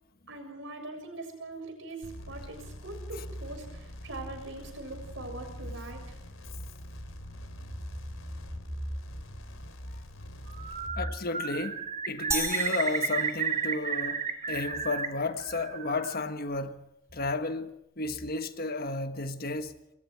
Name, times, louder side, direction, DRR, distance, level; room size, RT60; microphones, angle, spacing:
voice 1, 0.3-6.2, right 2 dB, 65° right, 7.1 m, -42 dB
sound 1, 2.0-10.9, equal, 80° left, 3.7 m, -43 dB
Bird, 10.5-11.1 11.3-15.1 15.4-16.2, right 6 dB, 40° right, 2.9 m, -32 dB
voice 2, 11.0-16.9 17.1-19.7, left 3 dB, 50° left, 1.4 m, -33 dB
sound 2, 12.3-14.2, right 3 dB, 15° right, 3.5 m, -35 dB
27.0 x 22.0 x 4.7 m
head